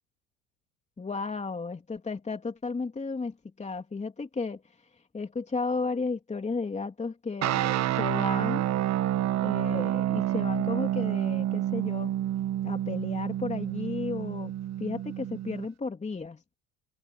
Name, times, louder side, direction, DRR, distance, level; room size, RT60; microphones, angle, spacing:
voice 1, 1.0-4.6 5.1-8.7 9.4-12.2 12.6-14.5 14.8-16.4, left 4 dB, 20° left, 3.2 m, -34 dB
sound 1, 7.4-15.7, right 12 dB, 45° right, 1.4 m, -29 dB
hypercardioid pair, 85°, 37 cm